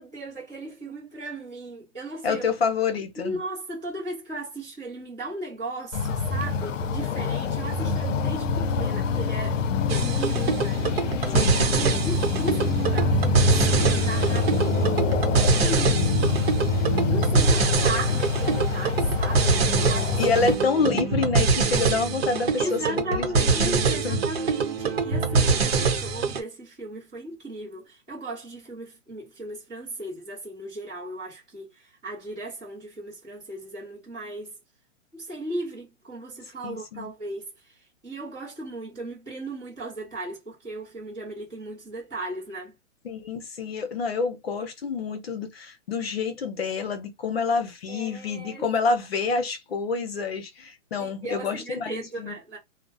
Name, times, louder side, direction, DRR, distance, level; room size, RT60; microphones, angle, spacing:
voice 1, 0.0-2.5 3.2-10.8 11.7-16.1 17.1-20.4 22.6-34.5 35.1-37.7 38.0-42.7 47.9-48.7 51.0-52.6, right 2 dB, 5° right, 0.5 m, -36 dB
voice 2, 2.2-3.4 11.3-11.7 20.2-24.2 36.6-37.1 43.0-52.3, left 4 dB, 50° left, 0.8 m, -28 dB
sound 1, 5.9-20.6, left 4 dB, 85° left, 0.6 m, -25 dB
sound 2, 9.9-26.4, right 4 dB, 55° right, 0.8 m, -24 dB
2.5 x 2.0 x 2.5 m
hypercardioid pair, 175°, 37 cm